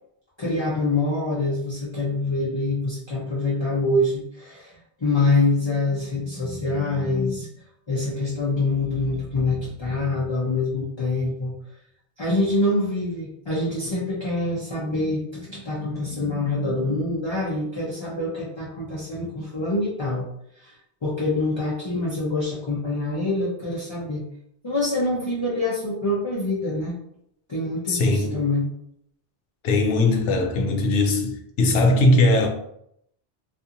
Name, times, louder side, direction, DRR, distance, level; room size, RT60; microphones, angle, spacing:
voice 1, 0.4-4.7 5.0-7.5 7.9-11.5 12.2-20.3 20.6-20.8 21.0-24.2 24.6-27.0 27.5-28.6, left 2 dB, 30° left, -6 dB, 0.5 m, -25 dB
voice 2, 27.9-28.4 29.6-32.5, left 2 dB, 80° left, 2 dB, 0.9 m, -20 dB
2.8 x 2.5 x 2.5 m, 0.72 s
omnidirectional pair, 1.2 m